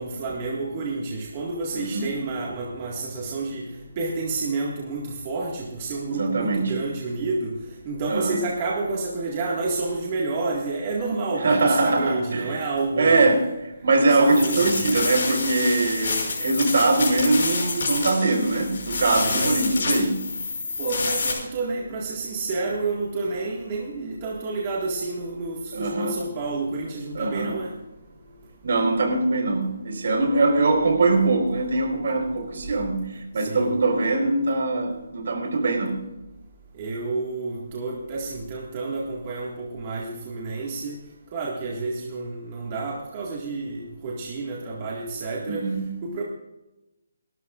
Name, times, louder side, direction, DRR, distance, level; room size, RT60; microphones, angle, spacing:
voice 1, 0.0-3.7 4.0-7.5 7.9-13.3 14.1-14.9 19.2-19.6 20.8-27.7 29.6-29.7 30.0-30.3 33.4-33.7 36.8-41.0 41.3-45.7 46.0-46.2, right 3 dB, 25° right, -3 dB, 1.9 m, -29 dB
voice 2, 1.7-2.1 6.1-6.8 8.1-8.4 11.4-12.6 13.0-13.4 13.8-20.2 25.7-26.2 27.1-27.6 28.6-36.0 45.4-45.9, right 2 dB, 55° right, 4 dB, 4.3 m, -22 dB
sound 1, 14.2-21.3, left 4 dB, 50° left, 6.6 m, -28 dB
29.5 x 13.0 x 2.5 m, 0.97 s
hypercardioid pair, 175°, 0 cm